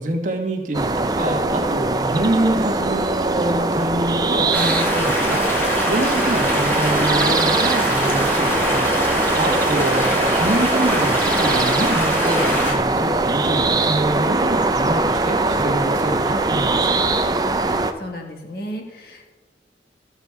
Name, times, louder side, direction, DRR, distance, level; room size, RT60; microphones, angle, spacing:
voice 1, 0.0-16.9, right 1 dB, 45° right, 2 dB, 1.6 m, -26 dB
sound 1, 0.7-17.9, right 2 dB, 20° right, 0.5 m, -21 dB
sound 2, 4.5-12.7, equal, 15° left, 2.1 m, -23 dB
voice 2, 17.7-19.3, equal, 60° left, 2 dB, 1.8 m, -34 dB
14.5 x 7.3 x 4.7 m, 1.2 s
head